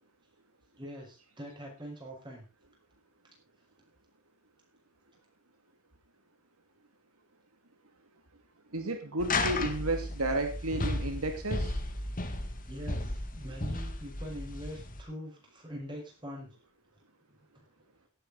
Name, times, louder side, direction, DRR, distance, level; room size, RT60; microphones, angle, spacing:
voice 1, 0.8-2.4 12.7-13.1 13.3-16.5, equal, 20° right, -1 dB, 6.6 m, -43 dB
voice 2, 8.7-11.8, right 2 dB, 85° right, 6 dB, 2.4 m, -32 dB
sound 1, 9.2-15.0, left 2 dB, 40° left, 2.0 m, -34 dB
17.5 x 9.2 x 4.0 m, 0.30 s
head